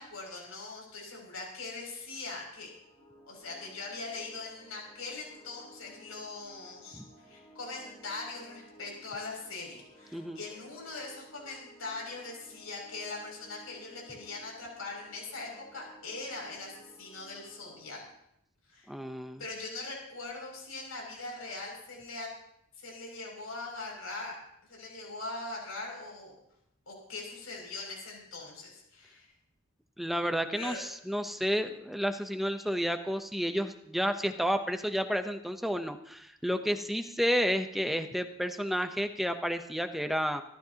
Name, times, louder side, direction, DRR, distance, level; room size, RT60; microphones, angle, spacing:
voice 1, 0.0-2.7 3.3-16.7 17.0-18.0 18.7-18.9 19.4-22.3 22.8-24.4 24.7-26.3 26.9-29.3 30.5-30.8, left 3 dB, 80° left, 0 dB, 6.5 m, -41 dB
sound 1, 2.6-18.0, right 1 dB, 20° left, 4.1 m, -57 dB
voice 2, 18.9-19.4 30.0-40.4, equal, ahead, 7 dB, 0.7 m, -31 dB
26.5 x 13.0 x 2.9 m, 0.78 s
head